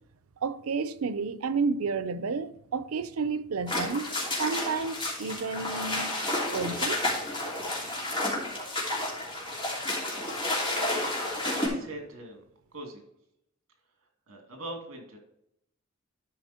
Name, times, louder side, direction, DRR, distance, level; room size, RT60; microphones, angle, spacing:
voice 1, 0.4-6.1 6.5-7.0, right 4 dB, 90° right, 0.6 m, -31 dB
sound 1, 3.7-11.7, left 1 dB, 25° left, 2.8 m, -31 dB
voice 2, 11.6-12.4 12.7-13.0 14.3-15.2, right 1 dB, 70° right, 2.6 m, -42 dB
11.5 x 5.1 x 4.3 m
head